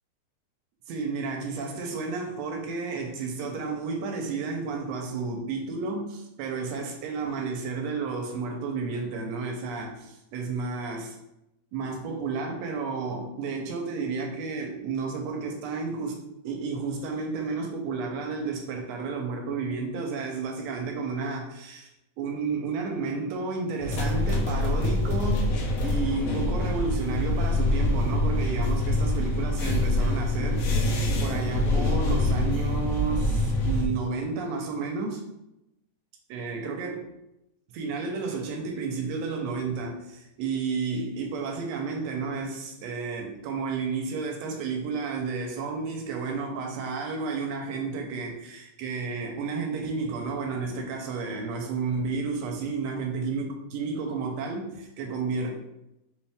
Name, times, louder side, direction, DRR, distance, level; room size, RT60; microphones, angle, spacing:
voice 1, 0.9-11.2 11.7-21.9 22.2-25.5 25.8-35.2 36.3-37.1 37.7-55.5, right 4 dB, 80° right, 2 dB, 1.5 m, -32 dB
sound 1, 23.8-33.9, left 2 dB, 70° left, 1.5 m, -25 dB
5.4 x 2.7 x 3.4 m, 0.88 s
omnidirectional pair, 3.5 m